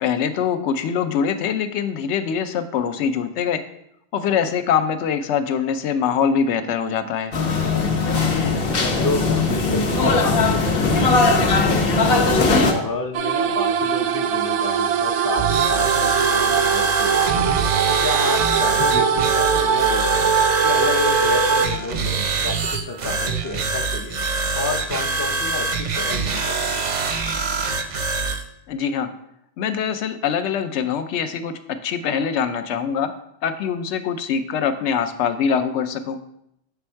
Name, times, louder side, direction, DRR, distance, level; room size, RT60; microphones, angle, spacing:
voice 1, 0.0-3.6 4.1-7.3 18.9-19.0 28.7-29.1 29.6-31.5 31.8-33.1 33.4-36.2, left 7 dB, 85° left, 9 dB, 0.9 m, -23 dB
sound 1, 7.3-12.7, left 3 dB, 60° left, 0.9 m, -19 dB
voice 2, 8.1-17.3 17.9-20.3 20.6-24.2 24.5-26.6, left 3 dB, 30° left, 4 dB, 0.4 m, -30 dB
sound 2, 13.1-21.7, right 7 dB, 80° right, 0.9 m, -21 dB
sound 3, 15.4-28.4, right 3 dB, 50° right, 0.6 m, -24 dB
7.0 x 3.4 x 4.4 m, 0.77 s
omnidirectional pair, 1.1 m